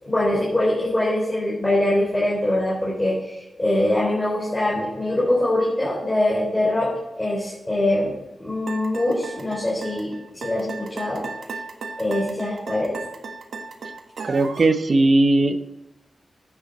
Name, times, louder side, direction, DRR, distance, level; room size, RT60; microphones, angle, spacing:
voice 1, 0.0-6.9 7.2-11.2 12.0-13.0, left 1 dB, 20° left, -6 dB, 3.9 m, -23 dB
sound 1, 8.7-14.7, right 4 dB, 85° right, 1.5 m, -35 dB
voice 2, 14.3-15.6, right 2 dB, 50° right, 9 dB, 0.9 m, -18 dB
10.5 x 8.5 x 4.3 m, 0.99 s
wide cardioid pair, 115°, 0 cm